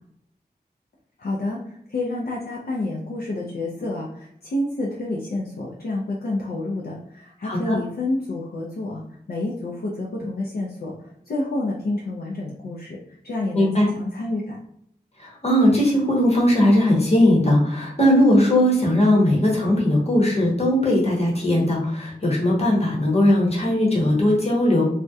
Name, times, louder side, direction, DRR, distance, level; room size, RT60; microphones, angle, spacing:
voice 1, 1.2-1.6 1.9-9.0 9.3-10.9 11.3-13.0 13.2-14.6, left 2 dB, 65° left, -4 dB, 0.4 m, -28 dB
voice 2, 7.4-7.8 13.5-13.9 15.2-24.9, left 1 dB, 40° left, -3 dB, 0.9 m, -19 dB
2.3 x 2.1 x 2.6 m, 0.72 s
wide cardioid pair, 75°, 17 cm